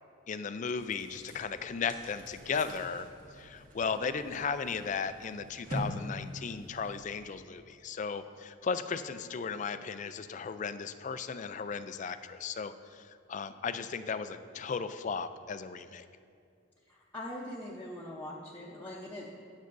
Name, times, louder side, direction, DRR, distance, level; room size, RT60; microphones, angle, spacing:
voice 1, 0.3-3.1 3.3-16.1, left 5 dB, 40° left, 11 dB, 0.4 m, -36 dB
sound 1, 0.8-7.4, equal, 45° right, 1.6 m, -44 dB
voice 2, 16.9-19.3, left 1 dB, 10° left, -7 dB, 0.8 m, -42 dB
18.0 x 6.4 x 2.6 m, 2.4 s
head